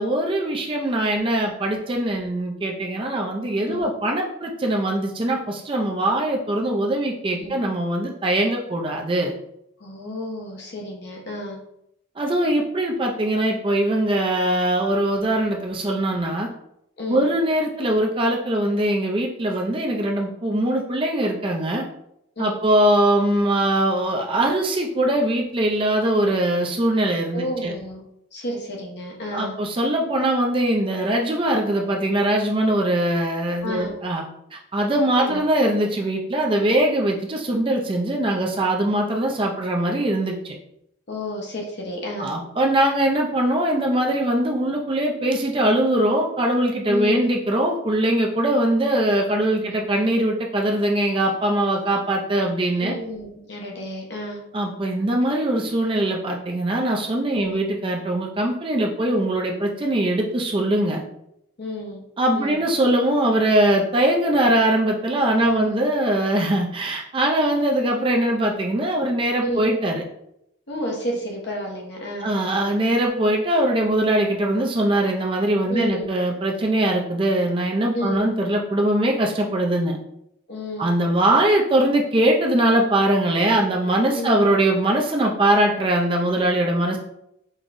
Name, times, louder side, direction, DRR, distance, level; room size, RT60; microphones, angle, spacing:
voice 1, 0.0-9.3 12.2-16.5 17.1-21.9 22.4-27.7 29.3-34.2 34.5-40.6 42.2-53.0 54.5-61.0 62.2-70.0 72.2-80.0 80.8-87.0, right 1 dB, 25° right, 0 dB, 0.4 m, -21 dB
voice 2, 9.8-11.6 17.0-17.3 22.4-22.6 27.3-28.0 28.3-29.6 33.6-33.9 35.2-35.5 41.1-42.4 46.9-47.3 49.6-49.7 52.8-54.4 57.3-57.6 61.6-62.0 62.3-62.6 65.4-65.7 69.4-69.6 70.7-72.3 75.7-76.1 77.9-78.2 80.5-80.9 84.1-84.4, equal, 55° left, -1 dB, 1.0 m, -31 dB
5.2 x 3.0 x 2.5 m, 0.79 s
head